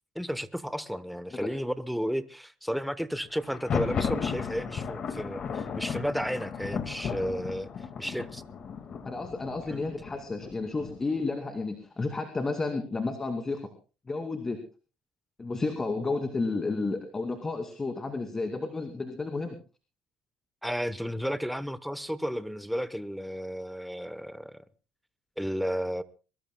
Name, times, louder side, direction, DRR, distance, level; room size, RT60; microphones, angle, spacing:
voice 1, 0.1-8.4 9.7-9.8 20.6-24.6 25.4-26.0, equal, ahead, 0.9 m, -33 dB
Thunder, 3.4-11.2, left 6 dB, 40° left, 1.9 m, -35 dB
voice 2, 9.0-13.6 14.1-14.6 15.4-19.6, left 3 dB, 20° left, 2.4 m, -32 dB
22.5 x 22.0 x 2.2 m
cardioid pair, 115°, 2 cm